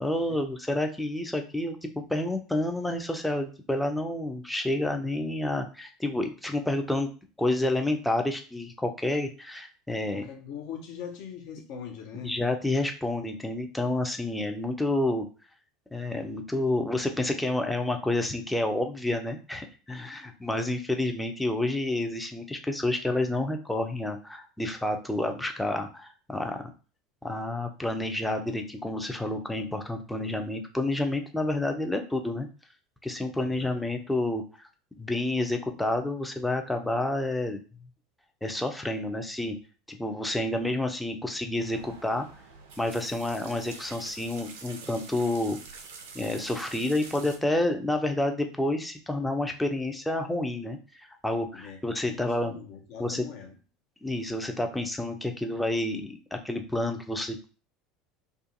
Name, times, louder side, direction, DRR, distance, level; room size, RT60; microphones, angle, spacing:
voice 1, 0.0-7.1 7.4-10.3 12.1-15.3 15.9-26.6 27.2-32.5 33.0-34.4 35.0-37.6 38.4-39.6 39.9-42.3 42.8-45.6 46.1-50.8 51.2-52.5 53.0-53.3 54.0-57.5, left 1 dB, 5° left, 5 dB, 0.5 m, -29 dB
voice 2, 10.1-12.4 33.4-33.9 51.5-53.5, left 7 dB, 55° left, 3 dB, 0.6 m, -41 dB
sound 1, 41.6-47.4, right 4 dB, 65° right, 0.4 m, -46 dB
2.4 x 2.2 x 2.6 m, 0.35 s
figure-of-eight pair, 70°, 0 cm